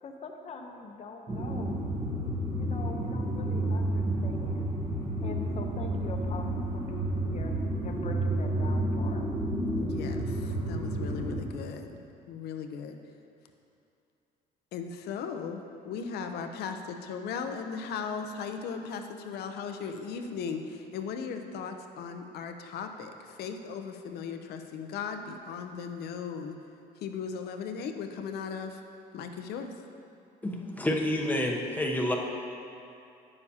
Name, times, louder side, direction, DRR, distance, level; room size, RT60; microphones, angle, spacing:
voice 1, 0.0-1.8 2.5-4.7 5.2-7.5 7.8-9.3, left 4 dB, 40° left, 3 dB, 0.8 m, -43 dB
sound 1, 1.3-11.4, right 1 dB, 30° right, 1.1 m, -30 dB
voice 2, 9.8-12.0 12.3-13.0 14.7-26.6 27.0-28.8 29.1-29.7, left 6 dB, 70° left, 6 dB, 0.6 m, -37 dB
voice 3, 30.4-32.2, left 1 dB, 10° left, 0 dB, 0.8 m, -29 dB
9.5 x 6.8 x 2.8 m, 2.6 s
cardioid pair, 110°, 17 cm